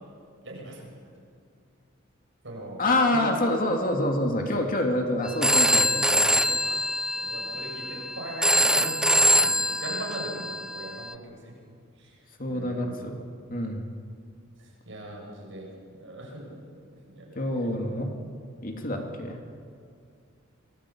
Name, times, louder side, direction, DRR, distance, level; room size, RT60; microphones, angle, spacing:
voice 1, 0.4-0.9 2.4-3.3 7.1-11.5 12.0-12.2 12.5-12.9 14.6-15.7 15.9-16.7 17.1-17.7, right 1 dB, 60° right, -2 dB, 7.7 m, -39 dB
voice 2, 2.8-6.7 12.4-13.2 13.5-13.9 17.3-18.1 18.6-19.4, left 1 dB, 40° left, 3 dB, 2.7 m, -27 dB
Telephone, 5.3-11.1, equal, 5° right, 0.7 m, -24 dB
26.5 x 19.5 x 8.7 m, 2.3 s
head